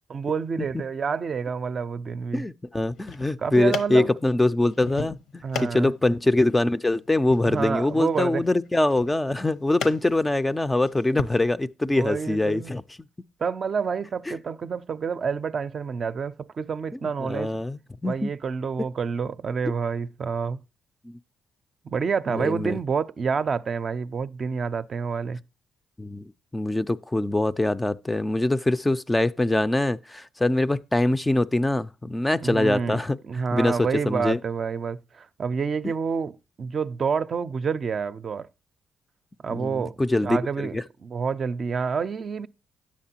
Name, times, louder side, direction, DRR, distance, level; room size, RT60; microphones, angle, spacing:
voice 1, 0.1-2.4 3.4-4.1 5.4-5.9 7.4-8.4 11.1-11.2 11.9-12.7 13.4-17.5 18.0-20.6 21.8-25.4 32.4-38.5 39.4-40.0 40.2-40.8 41.0-42.5, right 5 dB, 45° right, 0.5 m, -28 dB
voice 2, 2.3-12.8 14.3-14.4 17.0-18.3 21.0-21.2 22.3-22.8 26.0-33.2 33.5-33.8 34.1-34.4 39.5-40.8, left 2 dB, 15° left, 0.4 m, -24 dB
sound 1, 2.9-11.4, left 6 dB, 80° left, 0.9 m, -39 dB
10.0 x 7.3 x 2.8 m
cardioid pair, 90°, 0 cm